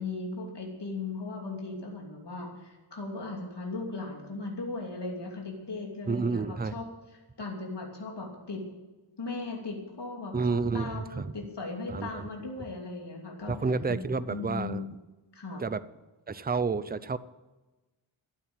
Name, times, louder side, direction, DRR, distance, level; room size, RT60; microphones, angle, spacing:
voice 1, 0.0-6.8 7.4-8.6 9.2-13.5 13.9-14.0 14.3-14.9 15.3-15.6, left 3 dB, 55° left, -1 dB, 2.9 m, -37 dB
voice 2, 6.1-6.8 10.3-11.3 11.9-12.3 13.5-14.9 15.6-15.8 16.3-17.2, right 4 dB, 20° right, 15 dB, 0.6 m, -30 dB
13.0 x 8.7 x 8.9 m, 1.1 s
wide cardioid pair, 80°, 49 cm